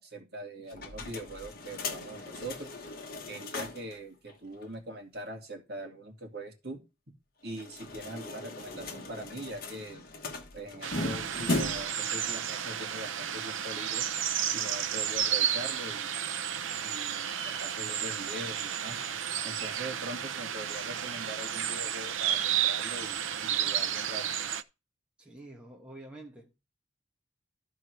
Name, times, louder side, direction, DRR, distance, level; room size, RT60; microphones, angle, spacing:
voice 1, 0.0-2.7 3.3-6.8 7.4-10.1 10.5-14.1 14.5-16.1 16.8-19.0 19.4-24.2, right 1 dB, 55° right, 2.4 m, -42 dB
sound 1, 0.7-4.0 4.3-4.4 4.6-4.7 7.5-12.0, left 2 dB, 50° left, 1.3 m, -37 dB
sound 2, 10.8-24.6, right 9 dB, 90° right, 0.6 m, -32 dB
voice 2, 25.2-26.5, right 2 dB, 5° right, 1.2 m, -48 dB
13.0 x 4.5 x 4.7 m
head